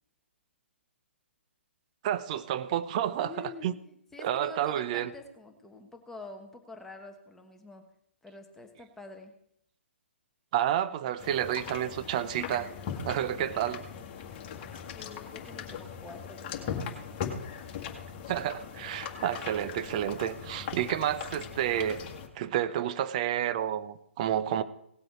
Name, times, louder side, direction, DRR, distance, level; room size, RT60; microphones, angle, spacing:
voice 1, 2.0-3.7 4.2-5.1 10.5-12.7 13.0-13.8 18.3-22.0 22.4-24.6, right 11 dB, 35° right, 14 dB, 0.7 m, -30 dB
voice 2, 3.2-7.8 8.2-9.4 13.3-13.8 15.0-17.1, left 3 dB, 5° left, 3 dB, 1.2 m, -47 dB
sound 1, 11.2-22.3, left 7 dB, 30° left, 1.8 m, -40 dB
18.0 x 7.8 x 4.5 m, 0.73 s
figure-of-eight pair, 130°, 7 cm